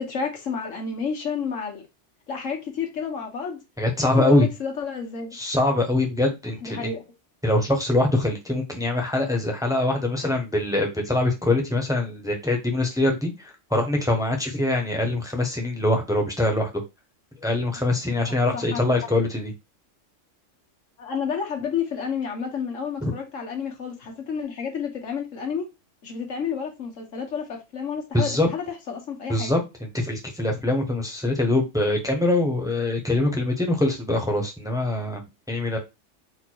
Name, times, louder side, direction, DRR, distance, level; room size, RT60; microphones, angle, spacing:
voice 1, 0.0-1.8 2.3-3.6 4.0-5.4 6.6-7.0 18.3-19.0 21.0-25.7 26.0-29.5, left 6 dB, 90° left, 1.7 m, -30 dB
voice 2, 3.8-4.5 5.3-6.9 7.4-16.7 17.4-19.5 23.0-23.1 28.1-28.5 29.3-29.6 29.9-35.2 35.5-35.8, left 2 dB, 5° right, 1.0 m, -23 dB
4.3 x 2.5 x 4.6 m
omnidirectional pair, 1.3 m